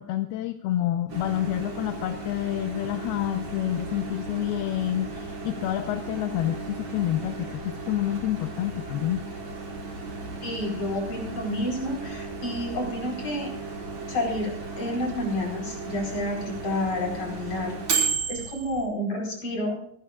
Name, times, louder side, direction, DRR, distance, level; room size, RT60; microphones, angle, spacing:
voice 1, 0.0-9.2, left 13 dB, 80° left, 8 dB, 2.4 m, -28 dB
Microwave oven, 1.1-18.9, right 4 dB, 40° right, 4.8 m, -35 dB
voice 2, 10.4-13.5 14.1-14.5 14.8-17.7 18.3-19.8, left 1 dB, 35° left, 1 dB, 5.6 m, -29 dB
26.5 x 11.5 x 2.4 m, 0.64 s
omnidirectional pair, 5.1 m